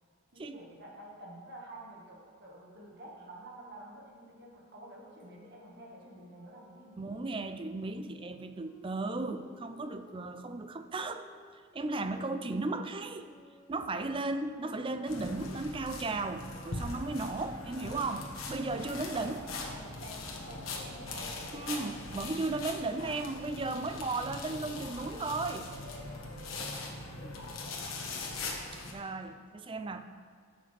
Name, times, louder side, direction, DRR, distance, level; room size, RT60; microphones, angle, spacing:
voice 1, 0.3-7.2 17.7-18.2 18.8-21.7, right 1 dB, 50° right, -2 dB, 1.6 m, -50 dB
sound 1, 4.7-10.3 10.9-16.5, equal, 45° left, 1.7 m, -60 dB
voice 2, 7.0-11.3 11.7-13.3 13.7-19.4 21.5-25.7 26.1-26.2 27.2-27.3 28.7-30.0, right 3 dB, 25° right, 8 dB, 0.4 m, -35 dB
sound 2, 15.1-28.9, left 2 dB, 75° left, 1.3 m, -41 dB
13.5 x 6.4 x 3.3 m, 2.1 s
head